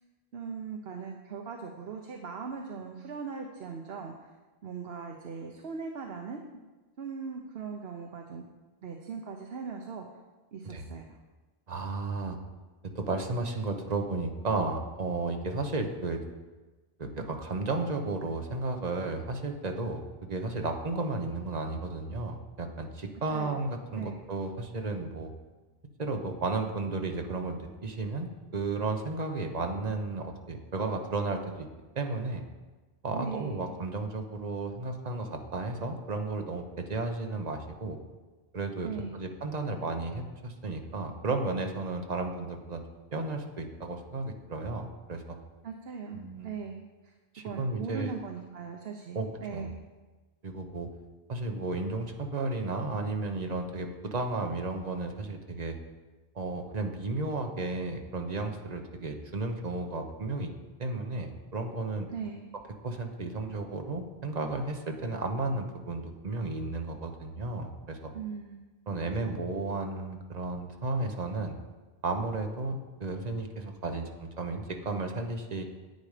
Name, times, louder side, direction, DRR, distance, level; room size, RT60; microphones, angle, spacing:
voice 1, 0.3-4.1 4.6-6.4 7.0-8.4 8.8-10.1 10.5-11.1 23.3-23.6 24.0-24.2 33.1-33.7 38.8-39.2 45.6-47.1 47.4-49.8 62.1-62.5 68.1-68.7 69.2-69.4, right 5 dB, 75° right, 2 dB, 1.1 m, -39 dB
voice 2, 11.7-12.4 12.8-16.2 17.0-25.3 26.0-31.7 31.9-32.4 33.0-38.0 38.5-42.8 43.1-45.4 46.1-46.5 47.3-48.1 49.1-49.7 50.4-50.9 51.3-55.8 56.3-60.5 60.8-62.1 62.8-68.1 68.9-71.5 72.0-75.6, right 3 dB, 40° right, 4 dB, 1.1 m, -33 dB
10.5 x 8.7 x 5.0 m, 1.2 s
omnidirectional pair, 1.0 m